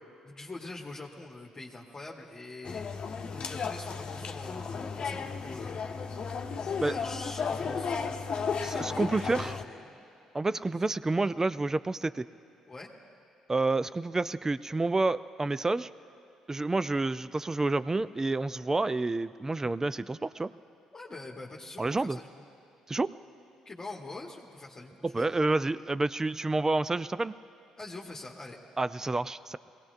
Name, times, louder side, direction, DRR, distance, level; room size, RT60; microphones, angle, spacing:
voice 1, 0.2-2.9 3.3-5.8 6.8-9.9 12.7-12.9 20.9-22.3 23.6-25.2 27.8-28.6, left 2 dB, 30° left, -2 dB, 1.4 m, -44 dB
sound 1, 2.6-9.6, left 5 dB, 50° left, 1.0 m, -34 dB
voice 2, 8.6-9.6 10.3-12.3 13.5-15.9 16.5-20.5 21.8-22.2 22.9-23.1 25.0-27.3 28.8-29.6, right 2 dB, 20° right, 16 dB, 0.4 m, -29 dB
22.5 x 17.0 x 2.6 m, 2.7 s
hypercardioid pair, 50°, 2 cm